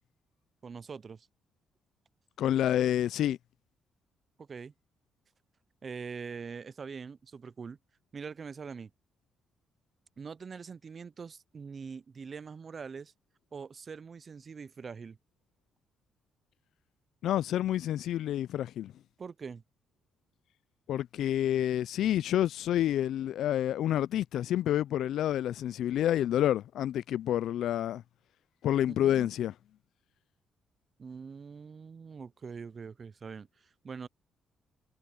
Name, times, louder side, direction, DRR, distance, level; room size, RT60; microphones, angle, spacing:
voice 1, 0.6-1.3 4.4-4.7 5.8-7.8 8.1-8.9 10.2-13.1 13.5-15.2 19.2-19.6 28.9-29.3 31.0-34.1, right 5 dB, 40° right, 0.5 m, -43 dB
voice 2, 2.4-3.4 17.2-18.9 20.9-28.0 28.6-29.5, left 11 dB, 75° left, 0.3 m, -28 dB
cardioid pair, 90°, 0 cm